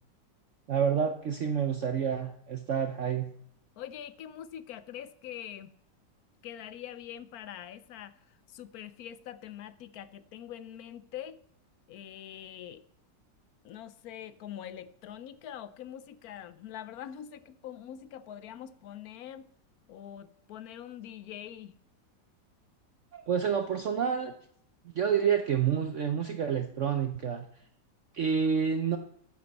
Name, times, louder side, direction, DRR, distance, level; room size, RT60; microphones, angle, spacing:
voice 1, 0.7-3.3 23.1-24.3 24.8-27.5 28.1-29.0, right 7 dB, 60° right, 7 dB, 0.8 m, -28 dB
voice 2, 3.8-5.7 6.4-11.4 11.9-12.8 13.6-19.5 19.9-21.7, left 10 dB, 70° left, 14 dB, 1.0 m, -44 dB
13.5 x 8.7 x 4.1 m, 0.67 s
omnidirectional pair, 1.9 m